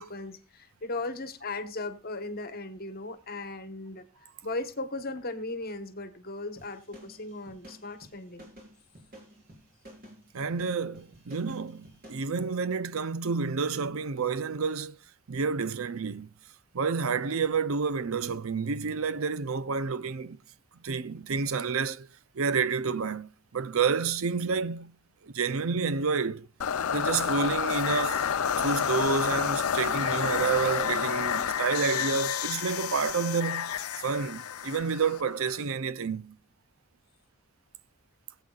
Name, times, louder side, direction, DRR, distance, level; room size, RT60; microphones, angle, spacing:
voice 1, 0.0-4.1 4.4-8.5, left 2 dB, 45° left, 1.2 m, -37 dB
sound 1, 6.6-12.3, right 1 dB, 45° right, 4.3 m, -51 dB
voice 2, 10.3-15.0 15.3-16.3 16.7-20.4 20.8-22.1 22.3-24.9 25.2-26.5 26.9-36.4, right 5 dB, 70° right, 0.6 m, -29 dB
sound 2, 26.6-35.6, left 8 dB, 80° left, 0.6 m, -30 dB
21.0 x 8.0 x 2.4 m
head